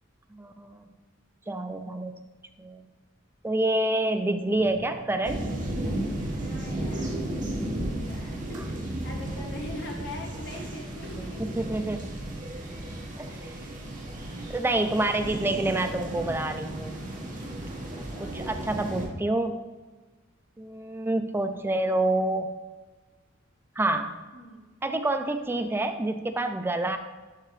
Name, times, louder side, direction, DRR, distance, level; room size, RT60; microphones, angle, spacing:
voice 1, 0.3-0.9 1.5-2.3 2.6-2.9 3.4-5.4 11.2-12.1 13.2-13.4 14.5-17.0 18.2-19.6 20.6-22.5 23.8-24.2 24.8-27.0, right 2 dB, 10° right, 7 dB, 0.3 m, -28 dB
sound 1, 4.5-18.1, equal, 65° right, 2.1 m, -46 dB
sound 2, 5.2-19.1, right 1 dB, 40° right, 1.4 m, -34 dB
voice 2, 6.3-7.6 7.9-11.5 17.4-18.6 24.3-24.7, left 1 dB, 60° left, 0 dB, 1.5 m, -43 dB
11.0 x 3.8 x 3.2 m, 1.3 s
head